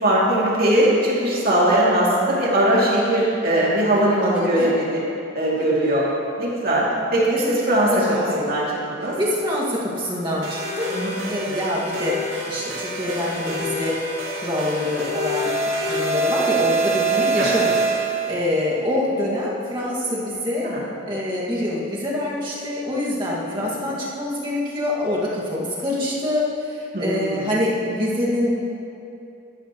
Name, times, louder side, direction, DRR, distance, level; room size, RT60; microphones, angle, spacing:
voice 1, 0.0-5.0 5.3-6.0 6.4-6.8 7.1-7.9 8.4-9.2 10.9-11.2 17.4-17.5 20.6-20.8 23.3-23.7 26.9-27.4, right 1 dB, 45° right, -6 dB, 2.7 m, -20 dB
voice 2, 1.5-1.8 4.2-4.8 5.6-5.9 7.9-8.4 9.2-10.9 11.3-12.2 12.5-14.0 14.4-17.7 18.0-20.7 21.1-28.5, left 1 dB, 25° right, -6 dB, 2.0 m, -25 dB
sound 1, 10.4-18.5, right 3 dB, 65° right, 2.3 m, -25 dB
13.5 x 13.0 x 3.1 m, 2.7 s
head